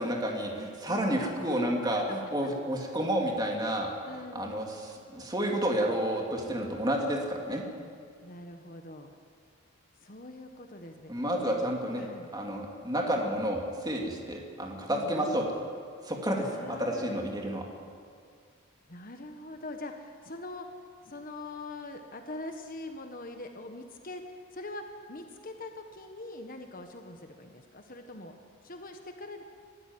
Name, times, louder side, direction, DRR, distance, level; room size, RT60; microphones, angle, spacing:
voice 1, 0.0-7.6 11.1-12.0 12.3-15.6 16.0-17.6, right 1 dB, 20° right, 0 dB, 2.9 m, -30 dB
voice 2, 4.0-4.6 8.2-9.1 10.0-11.1 11.4-11.6 12.0-12.3 14.9-15.4 16.4-17.1 18.9-20.7 21.0-24.8 25.1-28.3 28.6-29.4, left 2 dB, 40° left, 5 dB, 1.4 m, -43 dB
25.0 x 13.0 x 9.8 m, 2.1 s
head